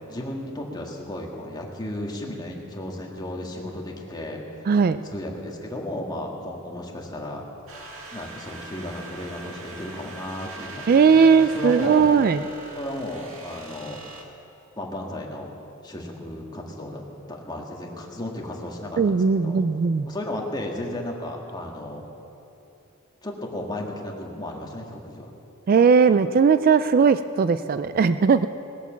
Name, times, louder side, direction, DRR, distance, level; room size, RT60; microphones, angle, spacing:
voice 1, 0.1-4.7 5.0-7.4 8.1-12.2 12.7-14.0 14.8-15.6 15.8-17.0 17.3-19.6 20.1-22.1 23.2-25.3, left 1 dB, 20° left, 0 dB, 1.7 m, -34 dB
voice 2, 4.7-5.0 10.9-12.4 19.0-20.1 25.7-28.5, right 5 dB, 45° right, 12 dB, 0.3 m, -18 dB
sound 1, 7.7-14.2, right 3 dB, 70° right, 1.8 m, -41 dB
19.0 x 8.3 x 7.2 m, 2.9 s
head